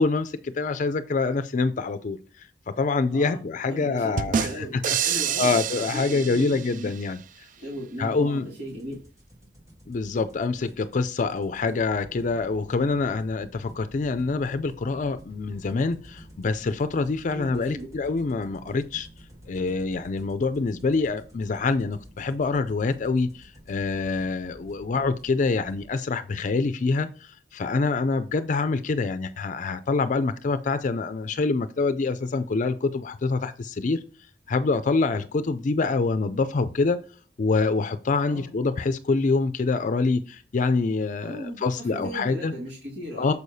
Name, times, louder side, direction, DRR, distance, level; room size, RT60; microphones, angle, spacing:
voice 1, 0.0-7.2 8.0-8.5 9.9-19.1 19.5-34.0 34.5-37.0 37.4-42.5 43.2-43.3, left 3 dB, 45° left, 11 dB, 0.4 m, -26 dB
voice 2, 3.1-6.9 7.6-9.0 17.3-17.9 38.3-38.5 41.2-43.3, equal, 75° right, -2 dB, 2.2 m, -37 dB
sound 1, 4.2-7.0, right 8 dB, 50° right, 0.3 m, -28 dB
sound 2, 8.7-25.9, equal, 20° right, 1.6 m, -50 dB
6.9 x 6.4 x 2.7 m, 0.39 s
head